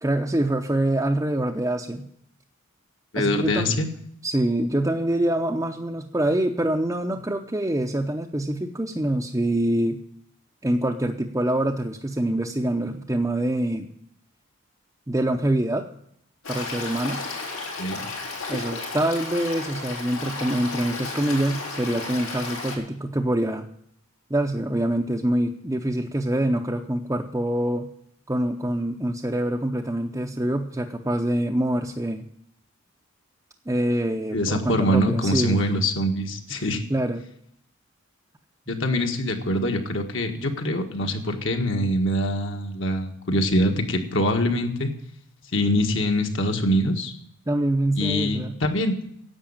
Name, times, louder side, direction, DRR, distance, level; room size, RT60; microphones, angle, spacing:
voice 1, 0.0-2.1 3.2-3.8 4.2-10.0 10.6-13.9 15.1-15.9 16.5-17.2 18.5-23.7 24.3-27.9 28.3-32.2 33.7-35.6 36.5-37.2 47.5-48.5, right 1 dB, 15° right, 1 dB, 0.6 m, -25 dB
voice 2, 3.1-3.9 17.8-18.1 34.3-36.8 38.7-44.9 45.5-47.1 48.0-48.9, equal, 60° left, 4 dB, 1.7 m, -24 dB
Stream, 16.4-22.8, left 3 dB, 90° left, 4.6 m, -33 dB
10.5 x 8.1 x 8.8 m, 0.70 s
head